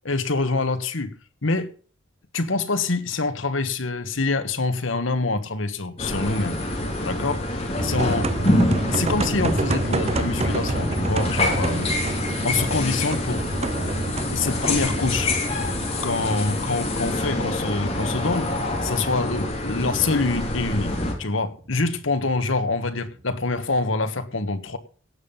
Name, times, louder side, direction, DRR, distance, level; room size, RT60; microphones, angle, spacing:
voice 1, 0.0-1.7 2.3-6.6 7.0-8.5 8.9-11.9 12.4-13.5 14.3-15.4 15.8-18.5 18.8-24.8, left 3 dB, 80° left, 1.4 m, -26 dB
sound 1, 6.0-21.1, left 1 dB, 35° left, 3.7 m, -26 dB
sound 2, 7.8-24.0, right 2 dB, 35° right, 0.8 m, -30 dB
17.5 x 7.5 x 5.4 m
head